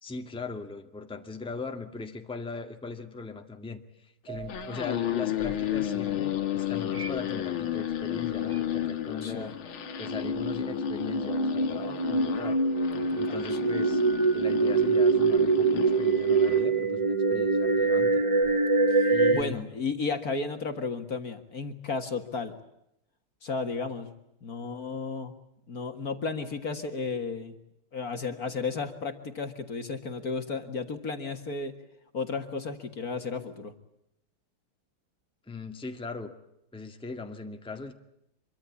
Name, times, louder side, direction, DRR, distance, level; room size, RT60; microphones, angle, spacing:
voice 1, 0.0-9.5 10.0-12.6 13.1-14.0 14.3-18.2 19.0-19.7 35.5-36.3 36.7-37.9, left 4 dB, 5° left, 4 dB, 1.7 m, -39 dB
sound 1, 4.3-16.7, left 12 dB, 85° left, 2.1 m, -33 dB
sound 2, 4.3-4.8 5.4-5.5 6.9-7.4 7.6-8.6 9.9-19.4, right 3 dB, 25° right, 0.8 m, -25 dB
voice 2, 9.2-9.5 12.9-13.7 18.9-22.6 23.4-24.1 24.4-25.3 25.7-27.6 27.9-31.7 32.1-33.7, left 4 dB, 45° left, 7 dB, 2.0 m, -33 dB
26.0 x 23.5 x 8.4 m, 0.82 s
omnidirectional pair, 2.2 m